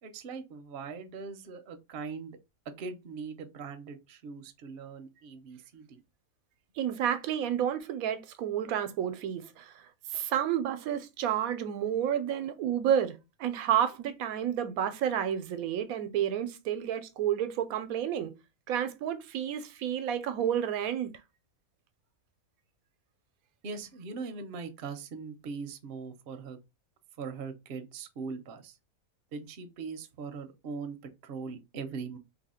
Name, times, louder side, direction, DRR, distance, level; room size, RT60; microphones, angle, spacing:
voice 1, 0.0-2.4 2.8-6.0 23.6-26.6 27.2-28.8 29.3-32.2, right 5 dB, 55° right, 0.7 m, -41 dB
voice 2, 6.8-9.8 10.1-18.3 18.7-21.1, right 9 dB, 90° right, 1.0 m, -30 dB
2.8 x 2.7 x 4.2 m
omnidirectional pair, 1.5 m